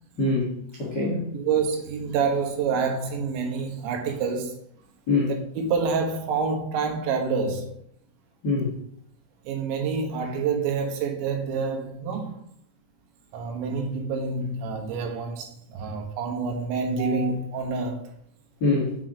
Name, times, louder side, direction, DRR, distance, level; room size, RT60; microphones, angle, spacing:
voice 1, 0.2-1.3 5.1-5.3 8.4-8.7 18.6-19.0, left 3 dB, 85° left, 0.9 m, -24 dB
voice 2, 1.3-4.6 5.3-7.8 9.5-12.4 13.3-18.1, right 5 dB, 75° right, 3.4 m, -27 dB
7.8 x 5.2 x 5.1 m
omnidirectional pair, 5.4 m